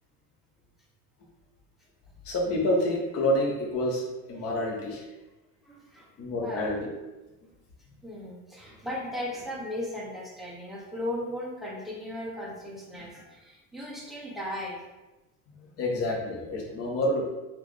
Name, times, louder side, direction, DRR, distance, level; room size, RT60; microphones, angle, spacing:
voice 1, 2.2-5.1 6.2-6.9 15.5-17.3, left 1 dB, 35° left, -1 dB, 0.8 m, -28 dB
voice 2, 5.6-6.1 6.4-6.6 8.0-14.8, left 1 dB, ahead, -4 dB, 0.3 m, -36 dB
3.8 x 2.4 x 3.1 m, 1.1 s
cardioid pair, 155°, 39 cm